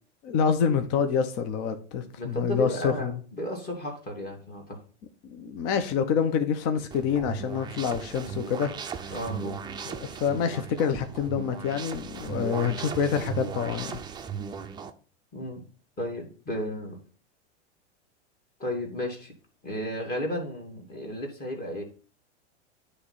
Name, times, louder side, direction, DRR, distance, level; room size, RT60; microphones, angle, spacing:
voice 1, 0.2-3.1 5.2-9.1 9.9-14.0, left 7 dB, 40° left, 1.0 m, -27 dB
voice 2, 2.2-4.8 9.1-9.6 15.3-15.6 16.0-17.0 18.6-19.3 19.6-21.8, equal, 25° left, 2.3 m, -33 dB
sound 1, 6.9-14.9, right 6 dB, 10° right, 0.5 m, -37 dB
9.6 x 3.3 x 5.6 m
hypercardioid pair, 105°, 35 cm